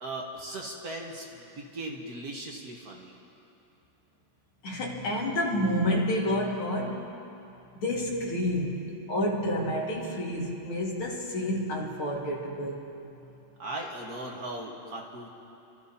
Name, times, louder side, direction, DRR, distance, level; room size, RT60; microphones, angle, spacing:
voice 1, 0.0-3.1 13.6-15.3, right 1 dB, 50° right, -1 dB, 1.6 m, -38 dB
voice 2, 4.6-7.1 7.8-12.9, equal, 80° left, -2 dB, 2.7 m, -29 dB
30.0 x 13.5 x 2.8 m, 2.9 s
omnidirectional pair, 2.3 m